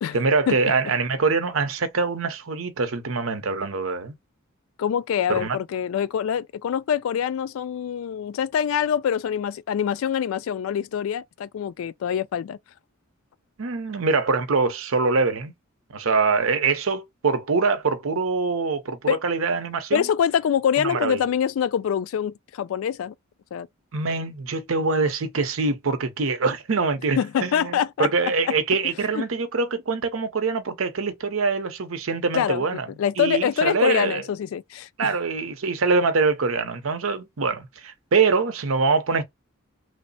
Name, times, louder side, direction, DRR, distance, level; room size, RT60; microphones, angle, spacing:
voice 1, 0.1-4.1 5.3-5.6 13.6-15.5 15.9-20.1 20.8-21.2 23.9-32.9 33.2-34.2 35.0-39.2, right 4 dB, 90° right, 0.7 m, -24 dB
voice 2, 4.8-12.6 19.1-19.2 19.9-23.1 23.5-23.7 27.2-28.5 29.1-29.2 32.3-35.1, left 8 dB, 80° left, 0.3 m, -25 dB
3.1 x 2.0 x 3.9 m
head